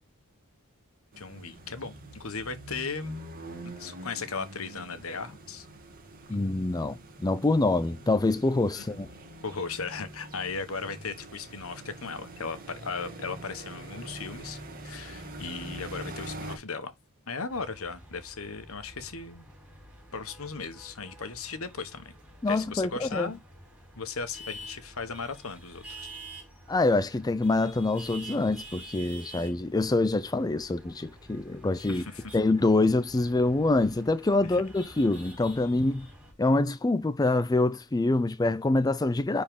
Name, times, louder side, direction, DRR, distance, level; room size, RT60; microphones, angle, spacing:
sound 1, 1.1-16.6, right 1 dB, 40° right, 2.3 m, -44 dB
voice 1, 1.2-3.1 3.8-5.7 8.7-9.0 9.4-16.9 17.3-19.5 20.1-22.2 22.5-23.4 23.9-26.2 31.9-32.4 34.4-34.6, left 4 dB, 70° left, 1.4 m, -37 dB
voice 2, 6.3-9.1 22.4-23.3 26.7-32.1 32.3-36.1 36.4-39.4, left 2 dB, 15° left, 0.4 m, -25 dB
sound 2, 17.5-36.3, right 1 dB, 5° right, 4.3 m, -48 dB
10.0 x 4.2 x 3.7 m
head